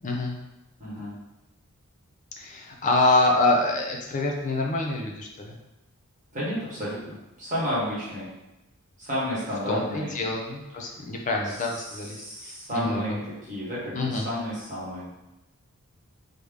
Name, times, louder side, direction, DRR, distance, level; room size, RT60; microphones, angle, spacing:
voice 1, 0.0-0.4 2.4-5.6 9.7-13.2 13.9-14.3, left 2 dB, 35° left, 1 dB, 0.4 m, -26 dB
voice 2, 0.8-1.1 6.3-8.3 9.0-10.1 10.9-11.0 11.4-15.1, equal, 35° right, -8 dB, 1.2 m, -32 dB
3.3 x 2.1 x 3.4 m, 0.97 s
head